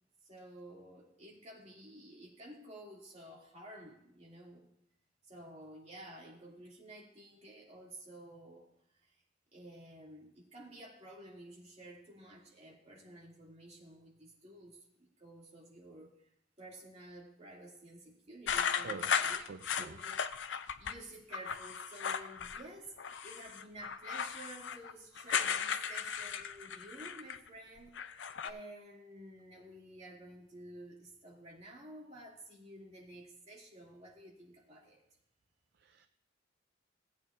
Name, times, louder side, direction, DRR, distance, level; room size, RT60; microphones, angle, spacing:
voice 1, 0.2-4.7 5.3-8.7 9.0-9.1 9.5-16.3 16.6-19.4 19.7-35.0, right 1 dB, 35° right, -3 dB, 2.5 m, -52 dB
sound 1, 18.5-20.9 21.3-22.7 23.0-27.5 27.8-28.5, left 7 dB, 70° left, 0.5 m, -36 dB
voice 2, 18.5-19.2 19.5-20.0 35.7-36.1, right 5 dB, 55° right, 8 dB, 0.4 m, -47 dB
17.5 x 8.5 x 2.6 m, 0.75 s
head